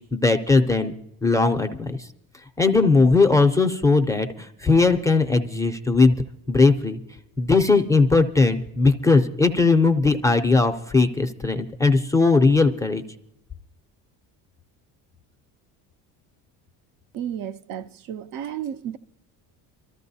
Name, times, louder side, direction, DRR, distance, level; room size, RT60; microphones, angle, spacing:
voice 1, 0.1-0.9 1.2-2.1 2.6-7.0 7.4-13.0, left 3 dB, 10° left, 0.4 m, -19 dB
voice 2, 17.1-19.0, right 9 dB, 55° right, 0.6 m, -32 dB
25.0 x 14.0 x 2.7 m
cardioid pair, 150°, 40 cm